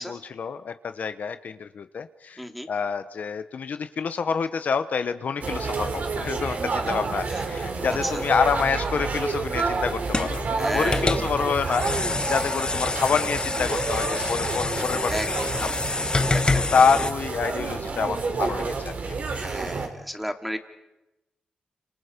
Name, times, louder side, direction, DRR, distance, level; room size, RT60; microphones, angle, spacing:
voice 1, 0.0-15.1 15.6-15.7 15.9-16.2 16.5-18.9, left 6 dB, 65° left, 10 dB, 1.0 m, -27 dB
voice 2, 2.4-2.7 7.3-7.5 7.9-8.2 10.6-11.1 15.1-15.3 15.5-15.8 19.3-20.6, equal, ahead, 5 dB, 2.8 m, -32 dB
sound 1, 5.4-19.9, right 4 dB, 65° right, 3.6 m, -29 dB
sound 2, 7.5-17.1, left 3 dB, 30° left, 1.3 m, -28 dB
29.5 x 26.5 x 5.2 m, 0.99 s
cardioid pair, 60°, 3 cm